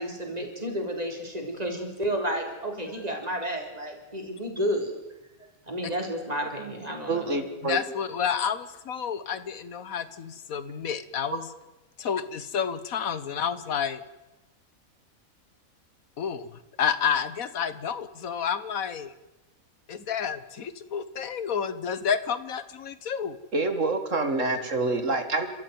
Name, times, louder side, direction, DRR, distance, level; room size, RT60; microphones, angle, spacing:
voice 1, 0.0-4.9 5.7-7.4, equal, 25° right, 2 dB, 4.1 m, -31 dB
voice 2, 7.1-7.8 23.5-25.5, right 2 dB, 60° right, 7 dB, 2.3 m, -26 dB
voice 3, 7.6-11.5 12.0-14.0 16.2-16.5 16.8-19.1 19.9-23.4, left 7 dB, 75° left, 14 dB, 1.5 m, -30 dB
29.5 x 13.5 x 9.4 m, 1.0 s
omnidirectional pair, 1.5 m